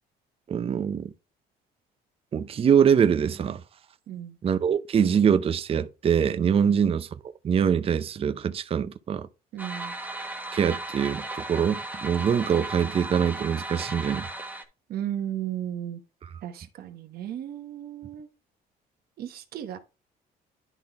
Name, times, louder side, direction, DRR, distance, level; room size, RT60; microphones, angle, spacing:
voice 1, 0.5-1.1 2.3-3.6 4.4-7.1 7.4-9.3 10.5-14.3, right 7 dB, 35° right, 0.6 m, -23 dB
voice 2, 4.1-4.4 6.6-6.8 9.5-9.9 14.9-16.0 16.4-18.3 19.2-19.8, right 11 dB, 65° right, 1.2 m, -35 dB
sound 1, 9.6-14.6, right 2 dB, 10° right, 1.3 m, -36 dB
11.0 x 3.9 x 3.5 m
cardioid pair, 110°, 17 cm